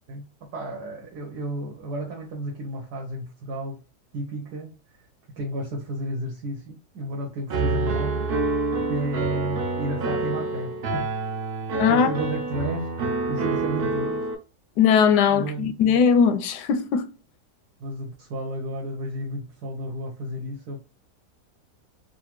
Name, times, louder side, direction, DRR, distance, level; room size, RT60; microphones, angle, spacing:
voice 1, 0.1-3.8 4.1-5.1 5.4-8.2 8.9-11.1 11.7-14.3 15.3-15.7 17.8-20.8, right 1 dB, 85° right, 1.5 m, -32 dB
Piano, 7.5-14.3, right 3 dB, 65° right, 0.5 m, -27 dB
voice 2, 14.8-17.1, left 7 dB, 90° left, 1.2 m, -19 dB
4.1 x 2.2 x 2.9 m
omnidirectional pair, 1.7 m